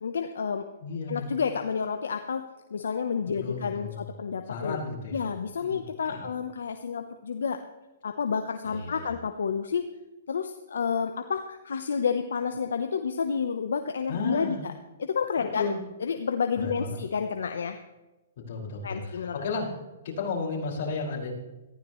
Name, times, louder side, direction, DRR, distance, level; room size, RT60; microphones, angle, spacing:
voice 1, 0.0-0.7 1.1-2.4 2.7-4.8 5.1-7.6 8.0-9.8 10.3-14.7 15.0-15.7 16.0-17.8 18.8-19.4, left 6 dB, 80° left, 7 dB, 0.9 m, -30 dB
voice 2, 0.8-1.3 3.4-4.1 4.5-5.2 5.6-6.2 8.7-9.1 14.1-14.6 15.4-15.8 16.6-17.0 18.4-19.7 20.0-21.3, left 4 dB, 55° left, -3 dB, 5.4 m, -33 dB
18.5 x 15.0 x 3.2 m, 1.1 s
hypercardioid pair, 140°, 0 cm